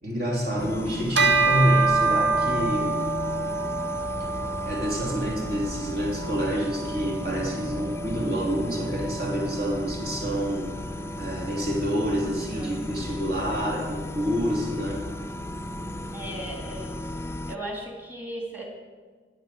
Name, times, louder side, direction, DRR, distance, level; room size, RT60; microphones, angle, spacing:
voice 1, 0.0-3.0 4.6-10.8 11.2-15.0, equal, 60° right, -2 dB, 3.1 m, -27 dB
sound 1, 0.6-17.6, left 1 dB, 15° left, 0.4 m, -35 dB
Bell, 1.1-10.8, right 3 dB, 85° right, 1.3 m, -28 dB
voice 2, 16.1-16.9 17.5-18.7, right 1 dB, 10° right, 0 dB, 3.0 m, -36 dB
21.0 x 8.2 x 6.5 m, 1.5 s
head